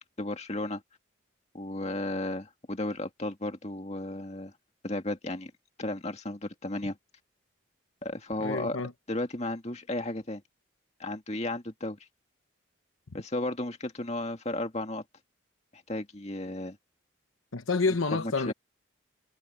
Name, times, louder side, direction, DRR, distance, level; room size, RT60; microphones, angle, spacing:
voice 1, 0.2-0.8 1.5-4.5 4.8-5.5 5.8-7.0 8.0-8.8 9.1-10.4 11.0-12.0 13.1-15.0 15.7-16.8 18.1-18.5, left 1 dB, 30° left, 2.1 m, -34 dB
voice 2, 8.4-8.9 17.5-18.5, left 3 dB, 80° left, 1.1 m, -28 dB
head